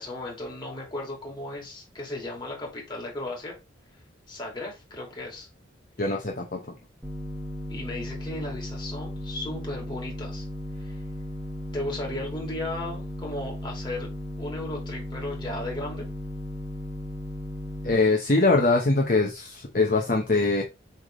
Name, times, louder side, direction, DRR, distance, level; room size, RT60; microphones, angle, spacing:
voice 1, 0.0-3.6 4.3-5.5 7.7-10.4 10.8-11.0 11.7-16.1, left 1 dB, 25° left, 2.6 m, -35 dB
voice 2, 6.0-6.8 17.8-20.6, left 3 dB, 45° left, 0.9 m, -23 dB
sound 1, 7.0-17.9, left 1 dB, 15° right, 1.0 m, -36 dB
7.9 x 3.5 x 3.6 m
head